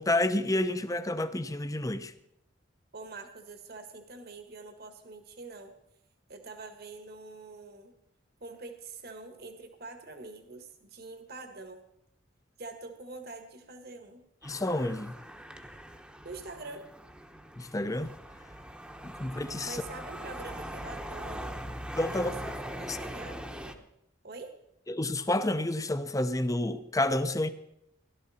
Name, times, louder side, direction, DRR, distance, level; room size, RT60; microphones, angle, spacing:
voice 1, 0.0-2.1 14.4-15.1 17.6-18.1 19.0-19.8 22.0-22.3 22.9-23.0 24.9-27.5, left 1 dB, 15° left, 0.7 m, -29 dB
voice 2, 2.9-5.7 6.3-7.9 8.4-11.8 12.6-14.2 16.2-16.8 19.6-21.6 22.1-23.8 24.2-24.5, right 3 dB, 55° right, 1.6 m, -45 dB
sound 1, 14.4-23.7, equal, 5° right, 1.0 m, -41 dB
16.5 x 12.0 x 4.3 m
head